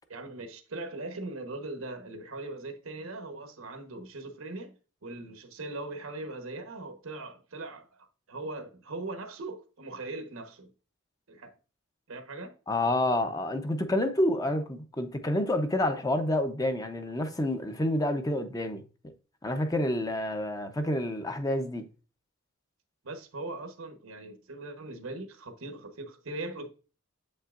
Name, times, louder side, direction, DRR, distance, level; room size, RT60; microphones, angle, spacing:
voice 1, 0.1-4.7 5.0-7.9 8.3-10.7 11.3-11.5 12.1-12.5 23.0-26.7, right 2 dB, 85° right, 1.1 m, -40 dB
voice 2, 12.7-18.8 19.4-21.9, left 1 dB, 20° left, 0.6 m, -28 dB
7.8 x 5.5 x 2.5 m
head